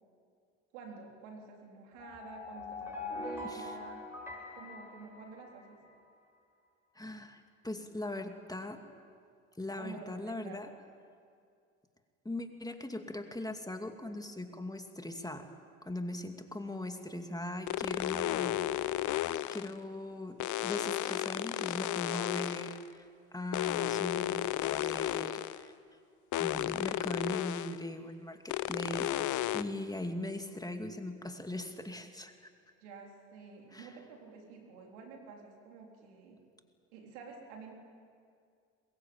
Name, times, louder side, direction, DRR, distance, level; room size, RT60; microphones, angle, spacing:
voice 1, 0.7-4.0 4.6-5.8 9.8-10.7 32.8-36.4 36.9-37.7, right 4 dB, 80° right, 1 dB, 4.0 m, -50 dB
sound 1, 1.9-5.9, left 2 dB, 5° right, 7.3 m, -43 dB
voice 2, 3.4-3.8 7.0-8.8 9.6-10.7 12.2-15.5 15.8-19.0 19.5-25.7 26.4-29.1 29.5-32.5 33.7-33.9, left 1 dB, 10° left, 5 dB, 2.4 m, -40 dB
sound 2, 17.7-19.8 20.4-22.9 23.5-25.6 26.3-27.8 28.5-29.6, left 14 dB, 60° left, 0.9 m, -33 dB
22.5 x 21.5 x 8.8 m, 2.3 s
hypercardioid pair, 60°, 35 cm